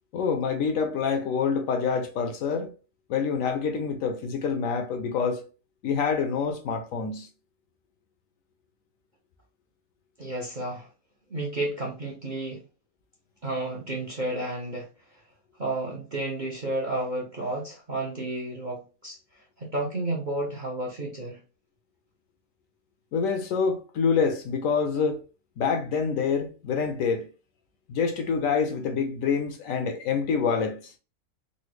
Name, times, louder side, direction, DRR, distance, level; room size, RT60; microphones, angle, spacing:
voice 1, 0.1-2.7 3.1-5.4 5.8-7.3 23.1-25.2 25.6-27.3 27.9-30.8, left 5 dB, 70° left, 0.9 m, -26 dB
voice 2, 10.2-10.9 11.3-12.6 13.4-14.9 15.6-19.2 19.6-21.4, right 2 dB, 50° right, 0.5 m, -31 dB
3.9 x 2.0 x 3.0 m
omnidirectional pair, 1.6 m